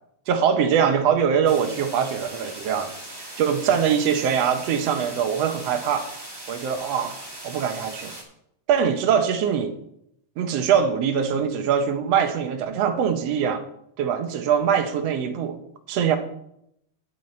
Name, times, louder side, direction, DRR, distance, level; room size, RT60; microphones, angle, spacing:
voice 1, 0.3-2.9 3.2-6.1 6.5-7.2 7.4-8.1 8.7-9.7 10.4-13.6 14.0-15.6 15.9-16.2, right 7 dB, 70° right, 7 dB, 1.7 m, -22 dB
sound 1, 1.4-8.2, right 1 dB, 10° right, 1.3 m, -39 dB
10.5 x 8.9 x 4.2 m, 0.76 s
omnidirectional pair, 3.4 m